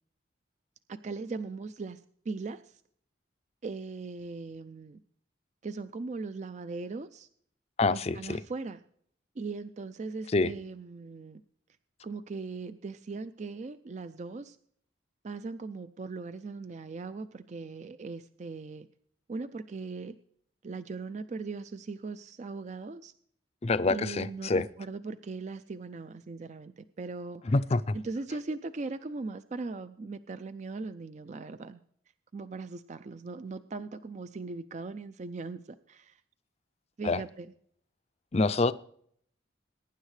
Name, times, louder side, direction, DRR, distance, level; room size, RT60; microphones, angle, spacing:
voice 1, 0.9-2.8 3.6-5.0 5.6-7.3 7.9-8.8 9.4-11.4 12.0-14.6 15.2-18.9 19.3-20.1 20.6-23.1 23.9-27.4 27.9-31.8 32.3-36.2 37.0-37.5, right 3 dB, 40° right, 0.4 m, -39 dB
voice 2, 7.8-8.4 10.3-10.5 23.6-24.7 27.5-28.0 37.0-37.2 38.3-38.7, left 3 dB, 35° left, 0.4 m, -26 dB
22.0 x 10.5 x 3.2 m
head